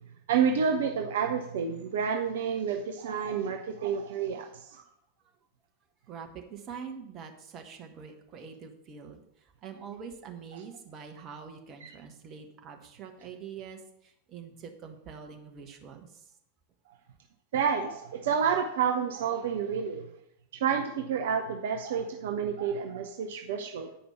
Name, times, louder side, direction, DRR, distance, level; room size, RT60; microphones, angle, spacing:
voice 1, 0.3-4.8 11.8-11.9 17.5-20.1 20.6-24.0, right 7 dB, 55° right, 4 dB, 0.6 m, -29 dB
voice 2, 6.1-16.3, right 6 dB, 30° right, 3 dB, 1.3 m, -45 dB
8.9 x 5.1 x 5.8 m, 0.78 s
figure-of-eight pair, 90°, 0 cm